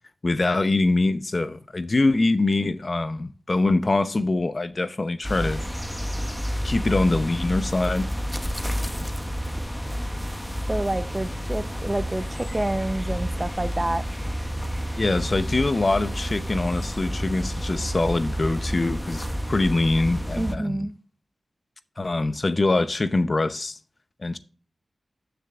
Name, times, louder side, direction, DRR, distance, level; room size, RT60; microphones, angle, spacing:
voice 1, 0.2-5.6 6.6-8.1 15.0-20.9 22.0-23.8 24.2-24.4, left 2 dB, 40° left, 0.7 m, -24 dB
sound 1, 5.2-20.5, equal, 5° left, 0.9 m, -30 dB
voice 2, 10.7-14.1 20.3-20.9, right 1 dB, 20° right, 0.7 m, -28 dB
14.5 x 6.8 x 2.4 m
wide cardioid pair, 75°, 0 cm